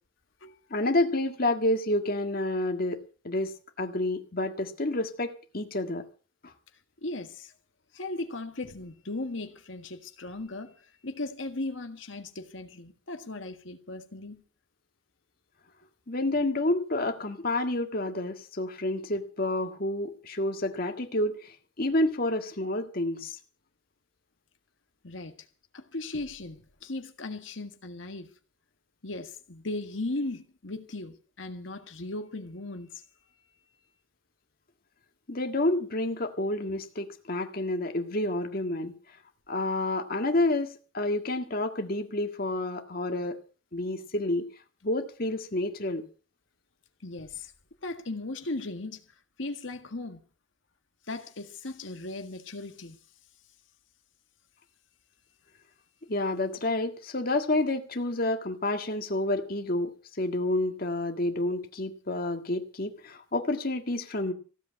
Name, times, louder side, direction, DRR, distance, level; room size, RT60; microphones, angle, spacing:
voice 1, 0.7-3.5 3.8-6.0 6.4-6.5 16.1-23.4 35.3-38.9 39.5-43.4 43.7-44.5 44.8-46.0 56.1-64.3, left 2 dB, 50° left, 1.8 m, -29 dB
voice 2, 7.0-7.5 7.9-14.4 25.0-25.5 25.7-28.3 29.0-33.0 47.0-47.5 47.8-49.0 49.4-50.2 51.1-53.0, left 2 dB, 80° left, 1.7 m, -37 dB
16.0 x 8.0 x 8.5 m
head